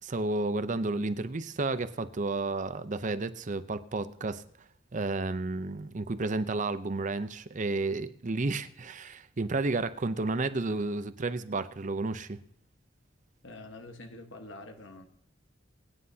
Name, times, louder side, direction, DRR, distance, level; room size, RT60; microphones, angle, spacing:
voice 1, 0.0-4.4 4.9-12.4, right 3 dB, 40° right, 12 dB, 0.6 m, -31 dB
voice 2, 13.4-15.1, left 2 dB, 80° left, 5 dB, 1.4 m, -46 dB
22.5 x 9.7 x 2.8 m, 0.70 s
head